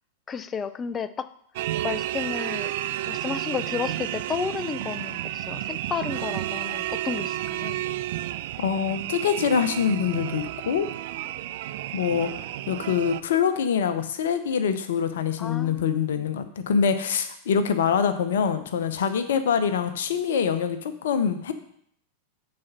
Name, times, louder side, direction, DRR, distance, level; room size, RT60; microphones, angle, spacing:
voice 1, 0.3-1.3 1.8-2.7 3.1-7.8 11.9-12.0 15.4-16.0, left 7 dB, 20° left, 14 dB, 0.4 m, -32 dB
sound 1, 1.6-13.2, right 14 dB, 50° right, 0.3 m, -31 dB
voice 2, 8.6-10.9 11.9-12.3 12.7-21.5, left 7 dB, 60° left, 10 dB, 0.7 m, -24 dB
8.7 x 4.2 x 5.4 m, 0.68 s
figure-of-eight pair, 90°, 0 cm